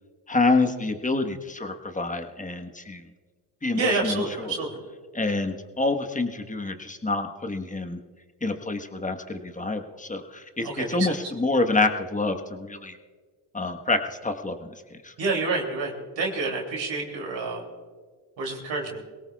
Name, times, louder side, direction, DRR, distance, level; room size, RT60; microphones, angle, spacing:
voice 1, 0.3-3.0 3.6-4.5 5.1-8.0 8.4-13.0 13.5-15.1, left 3 dB, 15° left, 5 dB, 1.4 m, -27 dB
voice 2, 3.7-4.8 10.6-11.2 15.2-17.6 18.4-19.0, right 3 dB, 70° right, 0 dB, 3.0 m, -28 dB
22.5 x 18.0 x 2.4 m, 1.5 s
supercardioid pair, 65°, 47 cm